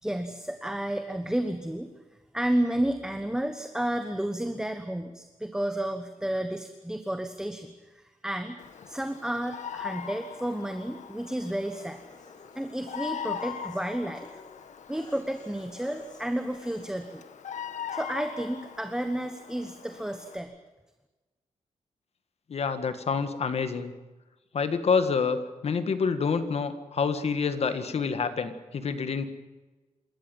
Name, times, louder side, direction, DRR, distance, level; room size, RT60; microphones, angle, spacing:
voice 1, 0.0-1.9 2.3-12.0 12.5-14.3 14.9-17.2 17.9-20.5, right 1 dB, 5° right, 7 dB, 1.2 m, -31 dB
Bird vocalization bird call bird song, 8.6-20.4, left 8 dB, 70° left, 1.6 m, -41 dB
sound 1, 11.5-17.0, left 2 dB, 30° left, 4.6 m, -55 dB
voice 2, 22.5-23.9 24.5-29.3, left 5 dB, 55° left, 10 dB, 1.8 m, -27 dB
27.5 x 14.0 x 9.2 m, 1.2 s
wide cardioid pair, 130°, 13 cm